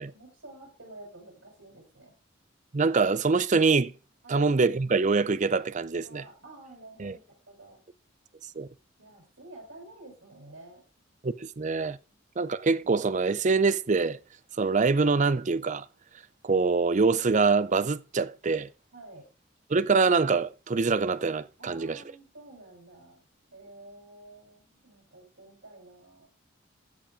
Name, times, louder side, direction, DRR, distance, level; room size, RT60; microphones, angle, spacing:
voice 1, 0.0-2.2 4.2-4.4 6.0-7.2 7.5-7.8 9.0-10.8 12.1-12.2 18.9-19.3 21.6-23.2 23.5-26.3, right 2 dB, 90° right, 7.5 m, -50 dB
voice 2, 2.7-3.9 4.3-6.2 7.0-7.2 8.6-8.7 11.2-12.0 12.4-14.2 14.6-15.8 16.4-18.7 19.7-22.0, right 4 dB, 40° right, 0.5 m, -24 dB
15.5 x 5.3 x 4.9 m
head